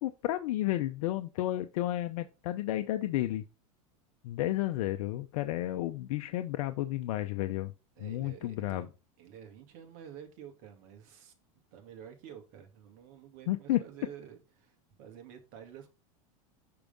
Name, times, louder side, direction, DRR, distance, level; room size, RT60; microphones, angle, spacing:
voice 1, 0.0-3.5 4.2-7.7 8.0-8.9 13.5-13.8, left 15 dB, 70° left, 0.7 m, -32 dB
voice 2, 8.0-8.9 9.2-11.3 11.7-15.9, right 9 dB, 55° right, 2.3 m, -50 dB
6.8 x 4.7 x 3.7 m
hypercardioid pair, 105°, 18 cm